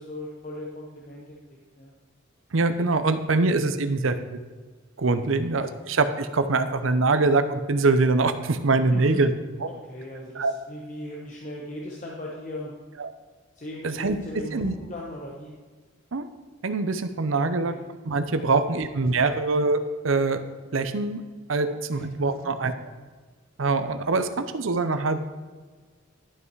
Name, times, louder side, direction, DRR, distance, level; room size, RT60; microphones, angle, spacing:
voice 1, 0.0-1.9 5.2-5.4 8.9-9.2 9.7-12.7 13.5-15.5 17.4-17.8 18.4-18.8 21.6-22.1 22.4-22.5, left 1 dB, 40° left, -3 dB, 1.1 m, -39 dB
voice 2, 2.5-4.4 5.0-9.3 9.6-9.7 10.4-10.5 13.0-13.1 13.8-14.2 14.5-14.7 16.1-16.3 16.6-17.7 18.0-19.8 20.0-20.4 20.7-21.2 21.5-22.7 23.6-25.2, right 3 dB, 80° right, 10 dB, 0.7 m, -23 dB
12.0 x 5.6 x 4.7 m, 1.4 s
head